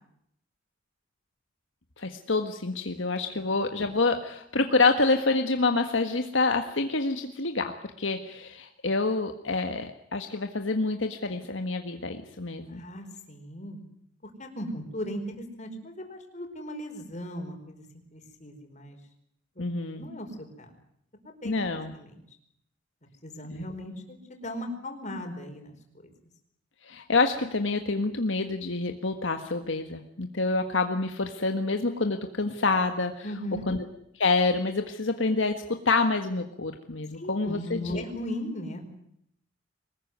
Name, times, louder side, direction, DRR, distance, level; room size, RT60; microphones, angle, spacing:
voice 1, 2.0-7.7 8.0-12.8 19.6-20.0 21.4-21.9 23.5-23.7 26.9-33.2 33.7-33.8 34.1-38.0, left 3 dB, 75° left, 6 dB, 1.7 m, -27 dB
voice 2, 12.7-13.8 14.2-17.8 18.1-19.0 19.5-19.6 19.9-20.7 21.2-21.6 21.9-22.1 23.2-26.1 33.2-33.7 37.1-38.8, equal, 40° left, 4 dB, 5.1 m, -38 dB
24.0 x 20.0 x 9.5 m, 0.73 s
head